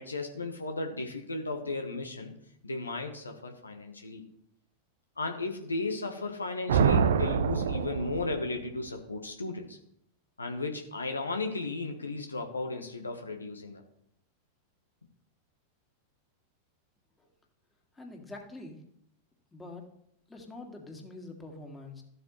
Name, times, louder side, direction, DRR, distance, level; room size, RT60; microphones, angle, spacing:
voice 1, 0.0-2.3 2.6-4.2 5.2-9.8 10.4-13.8, left 3 dB, 80° left, 4 dB, 1.1 m, -35 dB
sound 1, 6.7-8.7, right 7 dB, 60° right, 0.6 m, -26 dB
voice 2, 17.9-18.8 19.5-19.8 20.3-22.0, left 2 dB, 10° left, 1 dB, 2.1 m, -45 dB
13.0 x 7.9 x 3.1 m, 0.74 s
figure-of-eight pair, 90°, 0 cm